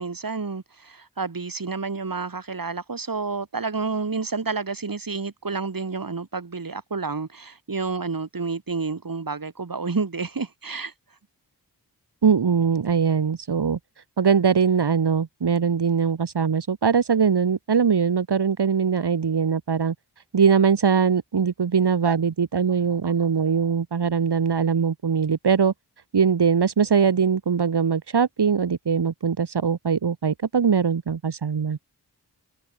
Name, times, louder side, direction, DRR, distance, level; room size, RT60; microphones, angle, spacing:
voice 1, 0.0-10.9, right 4 dB, 55° right, 5.4 m, -30 dB
voice 2, 12.2-13.8 14.2-19.9 20.3-25.7 26.1-31.8, right 6 dB, 75° right, 2.7 m, -21 dB
cardioid pair, 50°, 40 cm